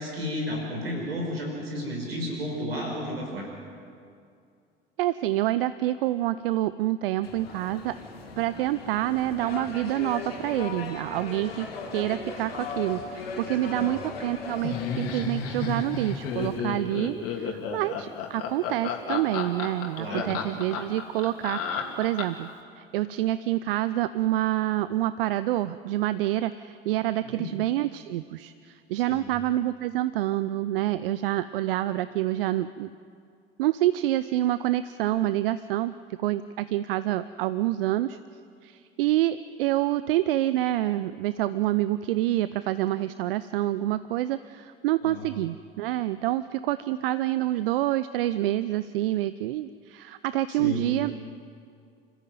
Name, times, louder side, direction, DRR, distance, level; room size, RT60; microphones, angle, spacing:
voice 1, 0.0-3.5 13.7-13.9 20.0-20.4 27.3-27.5 29.0-29.2 45.0-45.2 50.5-50.9, left 1 dB, 85° right, 0 dB, 5.0 m, -32 dB
voice 2, 5.0-7.9 8.4-22.5 22.8-32.9 33.6-38.2 38.6-51.1, right 14 dB, 70° right, 15 dB, 0.6 m, -27 dB
sound 1, 7.2-16.6, left 4 dB, 80° left, 3.0 m, -38 dB
Laughter, 14.6-22.5, left 5 dB, 55° left, 3.0 m, -32 dB
27.0 x 14.5 x 9.4 m, 2.4 s
figure-of-eight pair, 65°, 29 cm